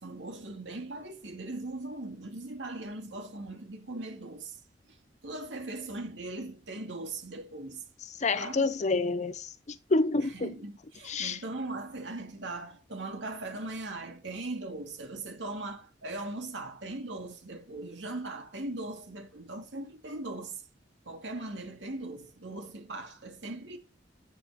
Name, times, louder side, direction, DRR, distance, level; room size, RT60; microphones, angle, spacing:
voice 1, 0.0-4.6 5.2-7.8 8.3-8.7 10.1-20.6 21.1-23.8, right 2 dB, 90° right, 2.3 m, -39 dB
voice 2, 8.2-10.5 11.1-11.4, left 3 dB, 40° left, 0.7 m, -28 dB
9.9 x 7.4 x 4.2 m
head